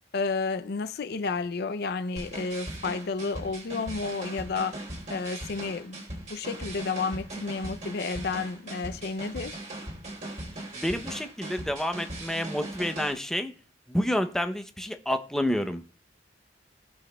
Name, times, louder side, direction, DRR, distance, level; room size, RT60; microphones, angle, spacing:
voice 1, 0.1-6.0 6.3-9.6, left 4 dB, 55° left, 0.4 m, -31 dB
sound 1, 2.2-13.1, right 1 dB, 40° right, 3.3 m, -39 dB
voice 2, 10.6-13.5 13.9-15.8, equal, 5° left, 0.6 m, -29 dB
18.5 x 6.2 x 2.3 m
head